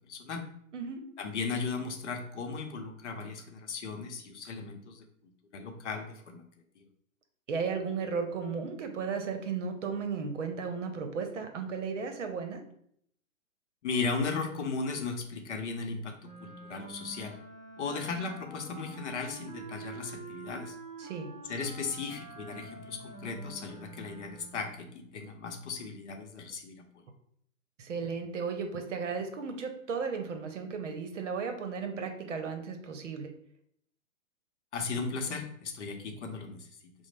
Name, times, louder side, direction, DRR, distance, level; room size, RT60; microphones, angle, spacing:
voice 1, 0.1-0.4 1.2-6.4 6.8-6.9 13.8-17.4 17.8-20.7 21.5-27.0 34.7-36.9, left 4 dB, 60° left, 4 dB, 0.7 m, -36 dB
voice 2, 0.7-1.0 7.5-12.6 21.0-21.3 27.8-33.3, right 5 dB, 60° right, 6 dB, 0.8 m, -35 dB
Wind instrument woodwind instrument, 16.2-24.7, right 3 dB, 15° left, 0.4 m, -47 dB
4.8 x 2.1 x 3.2 m, 0.69 s
hypercardioid pair, 150°, 41 cm